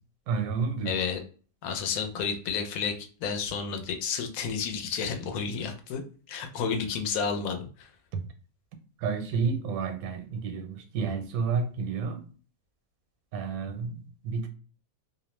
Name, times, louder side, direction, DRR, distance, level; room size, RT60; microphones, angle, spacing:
voice 1, 0.3-1.0 8.1-8.2 9.0-12.3 13.3-14.5, right 5 dB, 90° right, 1.1 m, -30 dB
voice 2, 0.9-1.2 1.6-6.0 6.3-7.9, left 6 dB, 80° left, 1.0 m, -31 dB
2.6 x 2.0 x 3.0 m
omnidirectional pair, 1.5 m